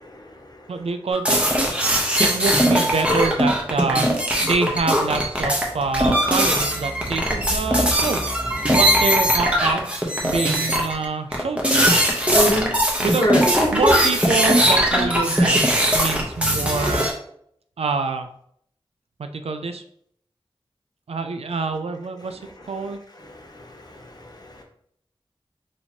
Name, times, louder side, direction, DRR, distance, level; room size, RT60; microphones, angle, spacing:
voice 1, 0.0-0.6 12.3-12.7 13.2-13.4 22.4-22.5 22.8-24.6, equal, 40° left, 1 dB, 0.9 m, -27 dB
voice 2, 0.7-1.4 2.2-4.1 4.4-8.2 8.7-11.8 13.0-13.3 13.7-17.1 17.8-18.3 19.2-19.8 21.1-22.4 22.7-23.0, right 4 dB, 90° right, 7 dB, 0.4 m, -26 dB
sound 1, 1.1-11.1 11.3-17.1, equal, 10° right, 0.9 m, -20 dB
3.0 x 2.8 x 4.3 m, 0.67 s
wide cardioid pair, 60°, 10 cm